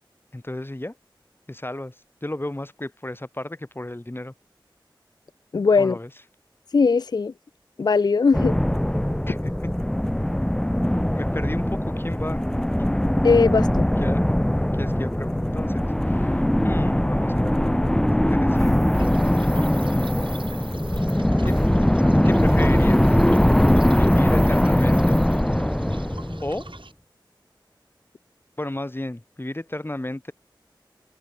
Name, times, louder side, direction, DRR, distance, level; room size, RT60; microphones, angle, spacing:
voice 1, 0.3-1.0 1.5-1.9 2.2-4.3 5.8-6.1 9.3-9.7 11.2-12.5 12.8-13.0 14.0-14.2 14.8-19.1 21.4-21.5 22.2-23.2 24.0-25.2 26.4-26.7 28.6-30.3, left 1 dB, 25° left, 3.1 m, -33 dB
voice 2, 5.5-6.0 6.7-7.3 7.8-8.6 13.2-13.9, left 4 dB, 55° left, 0.3 m, -19 dB
sound 1, 8.3-26.8, left 1 dB, 5° left, 0.6 m, -21 dB
sound 2, 18.6-21.2 21.5-21.7 22.3-25.4, right 2 dB, 45° right, 4.3 m, -43 dB
sound 3, 18.9-26.9, right 3 dB, 80° right, 8.0 m, -47 dB
wide cardioid pair, 55°, 8 cm